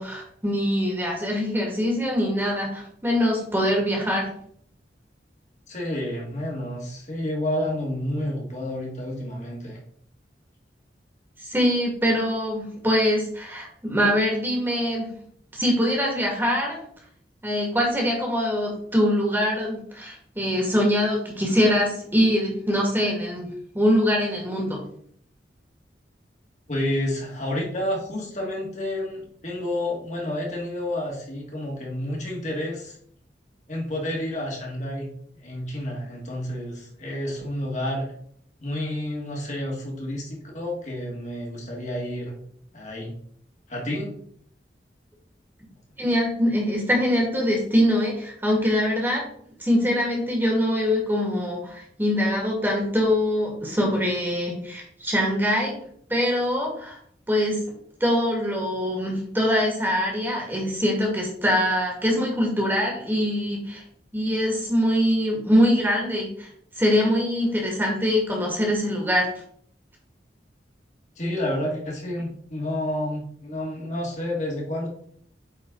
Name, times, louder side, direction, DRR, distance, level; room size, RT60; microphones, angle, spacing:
voice 1, 0.0-4.3 11.5-15.1 15.5-16.8 17.4-23.5 23.7-24.8 46.0-49.2 49.6-55.8 56.1-57.0 57.3-57.6 58.0-63.8 64.1-66.5 66.8-69.3, equal, 10° right, -1 dB, 1.9 m, -23 dB
voice 2, 5.7-9.8 26.7-33.0 33.7-38.1 38.6-42.4 42.7-43.2 43.7-44.1 71.2-74.9, left 1 dB, 40° left, -2 dB, 1.9 m, -30 dB
8.7 x 4.3 x 3.8 m, 0.63 s
head